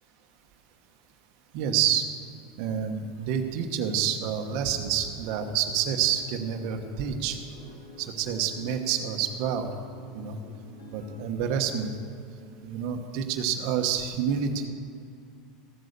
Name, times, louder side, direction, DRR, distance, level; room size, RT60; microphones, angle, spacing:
voice 1, 1.5-2.1 2.6-7.4 8.0-9.7 10.1-10.4 10.9-11.9 12.6-14.7, right 8 dB, 50° right, 4 dB, 1.2 m, -28 dB
sound 1, 4.4-12.8, left 2 dB, 65° left, 2.5 m, -50 dB
15.0 x 8.4 x 6.8 m, 2.4 s
supercardioid pair, 165°, 0 cm